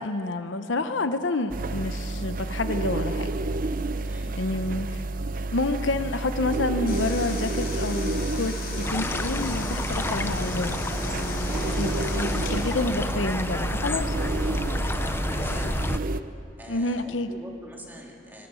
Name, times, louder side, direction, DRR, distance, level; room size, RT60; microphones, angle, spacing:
voice 1, 0.0-3.3 4.4-5.0 5.5-10.8 11.2-14.2 15.6-15.7 16.7-17.3, left 2 dB, 70° left, 10 dB, 0.9 m, -29 dB
sound 1, 1.5-16.2, right 2 dB, 45° right, 0.6 m, -30 dB
voice 2, 4.0-4.4 11.5-11.9 14.9-16.0 16.6-18.5, equal, 10° right, -1 dB, 3.1 m, -44 dB
sound 2, 6.8-13.1, left 3 dB, 50° left, 5.0 m, -37 dB
sound 3, 8.8-16.0, left 2 dB, 10° left, 0.5 m, -30 dB
22.5 x 22.0 x 7.0 m, 2.7 s
head